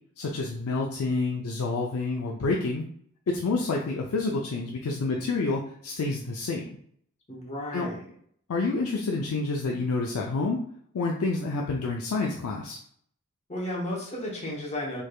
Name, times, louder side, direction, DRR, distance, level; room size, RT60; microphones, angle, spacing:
voice 1, 0.2-2.8 3.3-6.7 7.7-7.9 8.5-10.6 10.9-12.8, left 3 dB, 80° left, -1 dB, 0.4 m, -28 dB
voice 2, 7.3-8.1 13.5-15.0, left 1 dB, 30° left, -3 dB, 0.8 m, -33 dB
3.3 x 3.2 x 2.3 m, 0.63 s
head